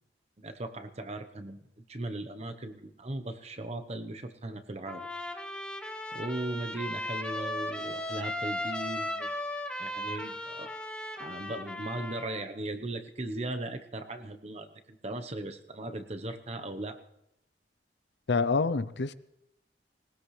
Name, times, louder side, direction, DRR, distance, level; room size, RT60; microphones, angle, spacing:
voice 1, 0.4-5.1 6.1-9.3 9.8-10.7 11.2-17.0, right 2 dB, 35° right, 1.0 m, -38 dB
Trumpet, 4.9-12.4, left 1 dB, 5° left, 1.3 m, -36 dB
voice 2, 18.3-19.1, left 4 dB, 70° left, 0.6 m, -27 dB
20.0 x 19.0 x 3.3 m
head